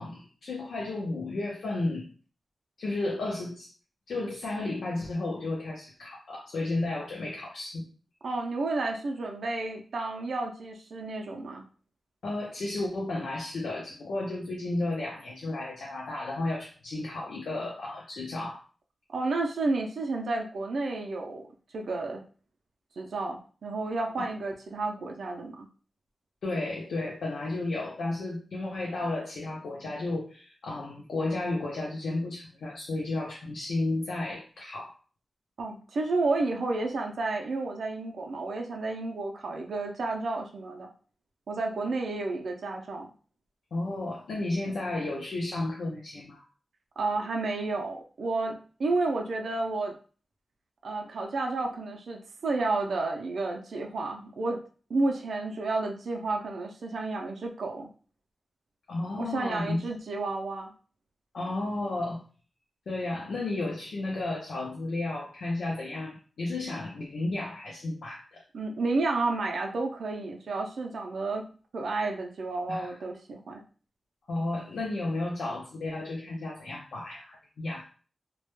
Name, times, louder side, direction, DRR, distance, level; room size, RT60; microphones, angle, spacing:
voice 1, 0.0-2.1 2.8-3.7 4.1-7.9 12.2-18.6 24.2-24.3 26.4-34.9 43.7-46.4 58.9-59.8 61.3-62.2 62.9-68.4 72.7-73.0 74.3-77.8, left 2 dB, 85° left, -2 dB, 0.5 m, -33 dB
voice 2, 8.2-11.6 19.1-21.5 21.7-22.2 23.0-25.7 35.6-40.9 41.5-43.1 47.0-50.0 50.8-54.6 54.9-57.9 59.2-60.7 68.5-71.5 71.7-73.6, right 3 dB, 75° right, 1 dB, 0.4 m, -31 dB
2.2 x 2.1 x 2.9 m, 0.39 s
wide cardioid pair, 140°, 0 cm